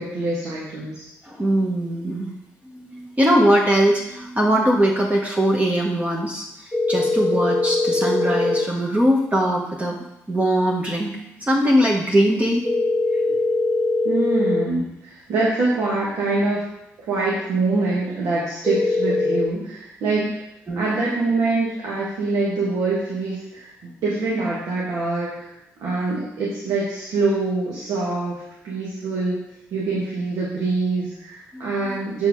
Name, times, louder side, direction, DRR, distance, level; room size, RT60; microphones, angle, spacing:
voice 1, 0.0-1.0 14.0-16.7 17.0-20.4 20.8-25.5 25.8-29.4 29.7-32.3, right 3 dB, 75° right, -5 dB, 1.8 m, -24 dB
voice 2, 1.2-2.3 2.6-6.4 6.9-10.0 10.3-11.1 11.4-12.6 20.7-20.9 31.5-32.0, right 1 dB, 25° right, -2 dB, 1.5 m, -21 dB
sound 1, 6.7-8.6 12.6-14.6 18.6-19.5, left 2 dB, 10° left, 0.7 m, -21 dB
7.4 x 5.1 x 4.9 m, 0.83 s
supercardioid pair, 55°, 6 cm